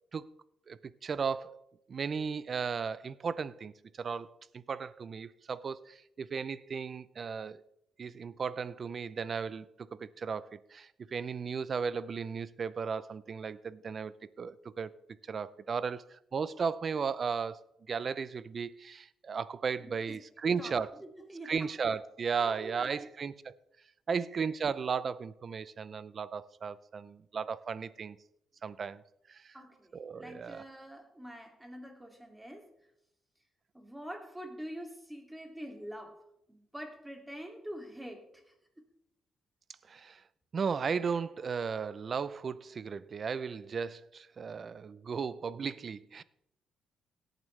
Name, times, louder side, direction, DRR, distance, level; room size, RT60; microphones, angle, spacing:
voice 1, 0.7-1.6 1.9-3.7 4.0-7.6 8.0-14.1 14.4-14.9 15.3-16.0 16.3-17.6 17.9-20.9 21.4-23.5 24.1-28.2 28.6-29.0 29.3-29.6 29.9-30.6 39.9-40.2 40.5-46.2, right 6 dB, 45° right, 0.6 m, -35 dB
voice 2, 19.8-20.2 20.6-20.7 21.0-21.5 22.4-23.1 29.5-32.7 33.7-36.2 36.5-38.5, equal, 10° right, 2.5 m, -45 dB
17.5 x 9.0 x 3.3 m
cardioid pair, 90°, 0 cm